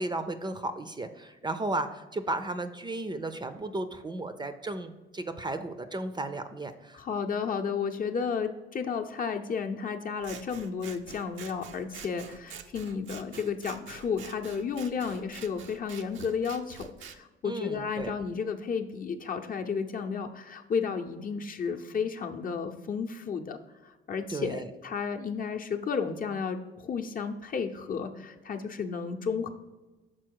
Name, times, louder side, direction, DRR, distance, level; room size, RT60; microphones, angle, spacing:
voice 1, 0.0-7.0 17.4-18.1 24.3-24.7, right 2 dB, 20° right, 9 dB, 0.5 m, -34 dB
voice 2, 6.9-29.5, left 6 dB, 45° left, 4 dB, 0.7 m, -33 dB
Scissors, 10.2-17.2, right 8 dB, 75° right, 0.6 m, -47 dB
6.2 x 4.2 x 4.6 m, 1.1 s
cardioid pair, 90°, 20 cm